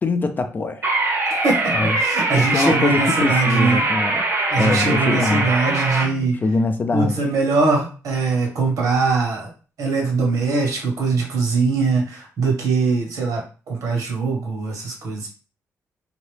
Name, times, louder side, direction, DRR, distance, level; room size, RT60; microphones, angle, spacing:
voice 1, 0.0-0.9 1.7-2.0 2.4-4.2 4.6-5.5 6.4-7.2, left 3 dB, 35° left, 0.4 m, -22 dB
sound 1, 0.8-6.1, right 2 dB, 40° right, 0.8 m, -22 dB
voice 2, 1.3-3.9 4.5-6.4 6.9-9.5 9.8-15.3, right 4 dB, 75° right, 1.4 m, -22 dB
2.9 x 2.6 x 3.3 m
cardioid pair, 105°, 6 cm